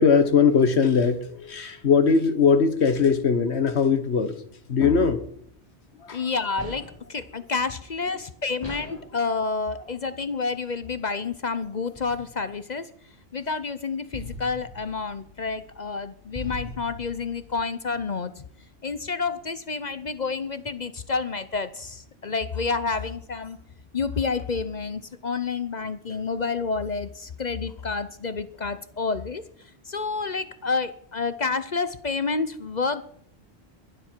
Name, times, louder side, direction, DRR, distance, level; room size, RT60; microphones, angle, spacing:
voice 1, 0.0-4.4 4.7-5.3 6.0-6.3, left 5 dB, 75° left, 1.6 m, -20 dB
voice 2, 6.1-12.9 13.3-18.3 18.8-23.6 23.9-29.4 29.9-33.0, left 4 dB, 45° left, 0.8 m, -29 dB
sound 1, 6.6-7.1 8.6-9.1 11.9-12.6 14.1-17.5, left 1 dB, 25° left, 4.4 m, -41 dB
22.0 x 12.0 x 4.6 m
omnidirectional pair, 1.1 m